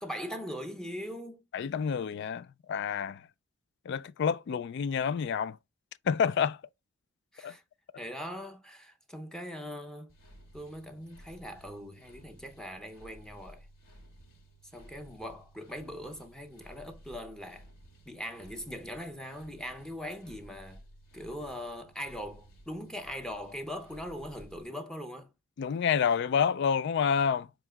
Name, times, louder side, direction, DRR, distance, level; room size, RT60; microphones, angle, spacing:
voice 1, 0.0-1.4 7.3-7.6 8.0-10.1 10.5-13.7 14.7-17.7 18.1-20.8 21.1-25.3, equal, 5° left, 0.6 m, -41 dB
voice 2, 1.5-3.2 3.9-5.6 6.1-6.6 7.4-7.5 25.6-27.5, left 7 dB, 55° left, 0.3 m, -28 dB
sound 1, 10.1-24.6, right 1 dB, 75° left, 2.4 m, -55 dB
7.2 x 2.9 x 2.3 m
head